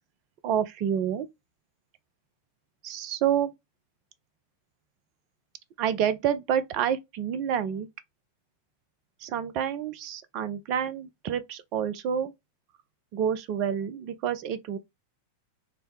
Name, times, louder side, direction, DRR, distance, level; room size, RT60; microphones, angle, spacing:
voice 1, 0.4-1.3 2.8-3.5 5.8-7.9 9.2-12.3 13.1-14.8, right 9 dB, 40° right, 0.4 m, -28 dB
3.2 x 2.0 x 3.6 m
figure-of-eight pair, 90°, 0 cm